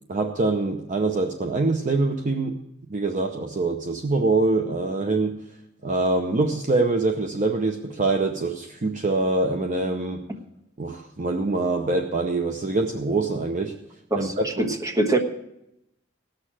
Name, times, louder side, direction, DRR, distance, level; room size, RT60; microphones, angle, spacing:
voice 1, 0.1-2.6 2.9-5.3 5.8-10.2 10.8-13.7 14.2-14.7, right 3 dB, 40° right, 5 dB, 0.7 m, -24 dB
voice 2, 14.1-15.2, right 2 dB, 15° right, 2 dB, 1.3 m, -24 dB
17.5 x 6.5 x 7.5 m, 0.84 s
head